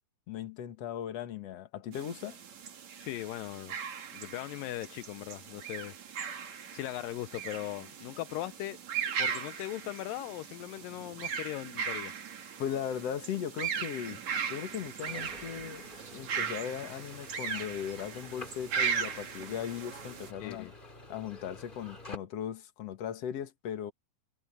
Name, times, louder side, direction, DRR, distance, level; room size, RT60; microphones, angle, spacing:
voice 1, 0.3-2.4 12.6-14.2 14.5-20.7 21.1-23.9, left 9 dB, 50° left, 2.4 m, -38 dB
sound 1, 1.9-20.3, right 7 dB, 55° right, 3.4 m, -38 dB
voice 2, 3.0-3.8 4.1-5.9 6.7-8.8 9.2-12.1 20.4-20.7, left 15 dB, 80° left, 2.3 m, -39 dB
sound 2, 15.0-22.2, left 2 dB, 15° left, 2.1 m, -49 dB
omnidirectional pair, 4.1 m